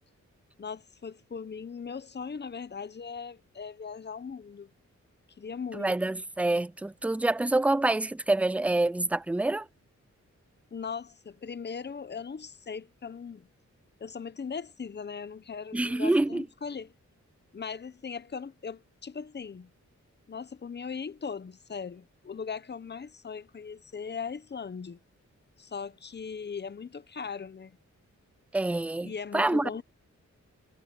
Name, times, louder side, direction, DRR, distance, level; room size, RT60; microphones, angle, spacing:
voice 1, 0.6-4.7 5.4-5.9 10.7-13.5 14.0-16.9 17.5-19.7 20.3-25.0 25.6-27.7 29.0-29.8, left 6 dB, 35° left, 0.8 m, -39 dB
voice 2, 5.7-9.7 15.7-16.5 28.5-29.8, right 2 dB, 5° right, 0.3 m, -27 dB
wide cardioid pair, 105°, 30 cm